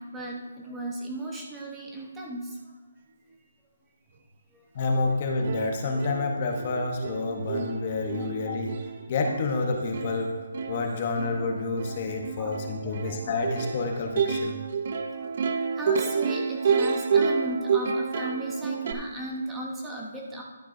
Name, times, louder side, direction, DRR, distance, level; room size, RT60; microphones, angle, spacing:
voice 1, 0.0-2.5 8.2-8.3 12.4-12.5 12.8-13.4 15.8-20.4, right 1 dB, 5° right, -2 dB, 1.0 m, -36 dB
voice 2, 4.7-8.8 9.1-14.6, left 3 dB, 30° left, 3 dB, 0.9 m, -29 dB
Plucked string instrument, 5.1-5.2 5.4-18.9, right 5 dB, 35° right, 0.6 m, -29 dB
11.5 x 9.8 x 2.6 m, 1.3 s
hypercardioid pair, 175°, 0 cm